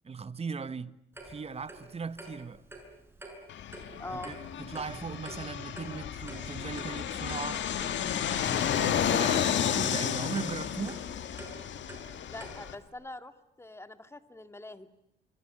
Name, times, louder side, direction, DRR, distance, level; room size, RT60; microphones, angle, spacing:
voice 1, 0.0-1.0 1.2-2.6 4.1-7.7 8.4-11.0, right 5 dB, 30° right, 1.2 m, -38 dB
Clock, 1.1-12.9, right 1 dB, 10° right, 7.0 m, -48 dB
Fixed-wing aircraft airplane, 3.5-12.7, left 9 dB, 65° left, 1.9 m, -32 dB
voice 2, 4.0-4.3 12.2-14.9, left 2 dB, 15° left, 2.0 m, -44 dB
26.5 x 23.0 x 8.8 m
cardioid pair, 90°, 20 cm